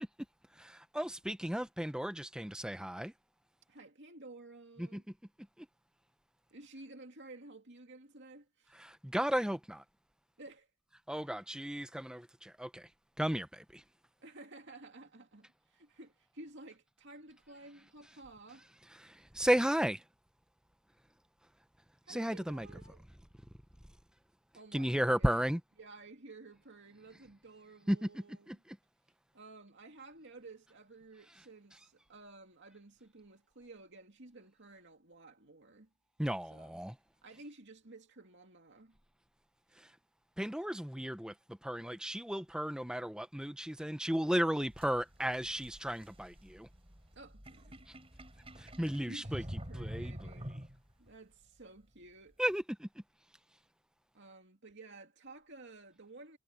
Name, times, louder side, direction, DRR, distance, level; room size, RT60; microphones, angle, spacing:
voice 1, 0.6-3.1 4.8-5.0 8.8-9.8 11.1-12.9 13.2-13.8 19.0-20.0 22.1-22.7 24.7-25.6 27.9-28.1 36.2-36.9 40.4-41.3 41.6-46.7 48.6-49.4 49.7-50.1 52.4-52.9, equal, 5° right, 0.8 m, -34 dB
voice 2, 3.7-5.0 6.5-8.8 10.4-10.7 11.2-11.4 14.2-18.7 22.0-23.0 24.5-25.4 25.8-28.6 29.3-35.9 36.5-36.8 37.2-38.9 39.7-39.8 47.1-48.0 49.0-50.6 51.0-52.4 54.1-56.4, right 2 dB, 55° right, 2.6 m, -53 dB
sound 1, 44.6-51.1, equal, 25° right, 4.8 m, -47 dB
head